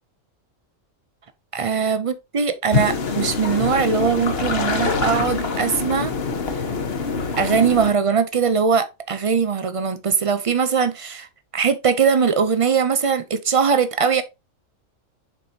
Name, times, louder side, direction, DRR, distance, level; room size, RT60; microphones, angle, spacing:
voice 1, 1.5-6.1 7.4-11.3 11.5-14.2, right 6 dB, 50° right, 0.4 m, -21 dB
sound 1, 2.7-7.9, left 4 dB, 50° left, 1.3 m, -24 dB
6.6 x 5.1 x 2.8 m
omnidirectional pair, 1.3 m